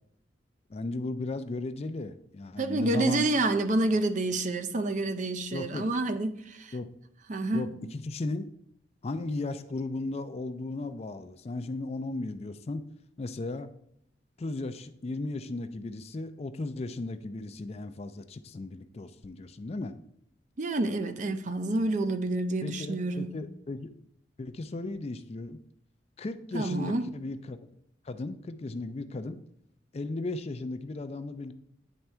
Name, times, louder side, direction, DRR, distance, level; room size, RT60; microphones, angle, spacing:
voice 1, 0.7-3.3 5.5-5.9 6.7-6.9 7.5-8.5 9.0-12.8 13.2-13.7 14.4-19.9 22.6-23.9 24.4-25.6 26.2-27.6 28.0-29.4 29.9-31.5, left 2 dB, 35° left, 0.4 m, -36 dB
voice 2, 2.6-6.7 7.3-7.7 20.6-23.4 26.5-27.1, right 2 dB, 40° right, 0.5 m, -28 dB
9.1 x 3.5 x 4.3 m
head